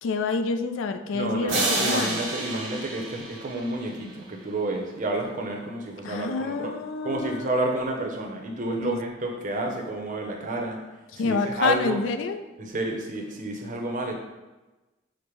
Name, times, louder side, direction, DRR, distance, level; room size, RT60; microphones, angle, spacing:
voice 1, 0.0-2.2 6.0-7.5 8.8-9.0 11.2-12.4, left 4 dB, 70° left, 7 dB, 0.3 m, -27 dB
voice 2, 1.1-12.0 12.6-14.1, right 2 dB, 40° right, 1 dB, 0.6 m, -30 dB
sound 1, 1.5-4.2, right 2 dB, 90° right, 1.4 m, -29 dB
5.0 x 2.1 x 4.4 m, 1.1 s
head